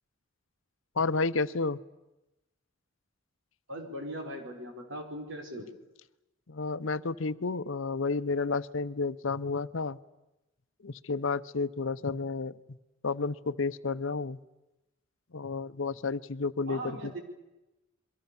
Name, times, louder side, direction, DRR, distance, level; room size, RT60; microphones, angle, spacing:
voice 1, 1.0-1.8 6.5-10.0 10.8-12.6 13.0-14.4 15.3-17.2, left 4 dB, 70° left, 14 dB, 0.8 m, -31 dB
voice 2, 3.7-5.7 16.7-17.2, right 1 dB, 70° right, 3 dB, 5.2 m, -39 dB
29.0 x 23.5 x 7.1 m, 0.99 s
head